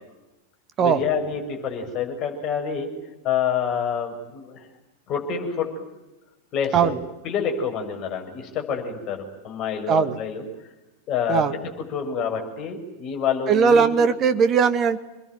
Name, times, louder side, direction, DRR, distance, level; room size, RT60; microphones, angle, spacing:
voice 1, 0.8-2.9 3.2-4.6 5.1-5.8 6.5-10.4 11.1-14.1, left 7 dB, 35° left, 3 dB, 6.8 m, -27 dB
voice 2, 9.9-10.2 11.3-11.5 13.5-15.0, right 6 dB, 30° right, 12 dB, 1.8 m, -19 dB
28.5 x 21.5 x 9.3 m, 1.0 s
figure-of-eight pair, 90°, 0 cm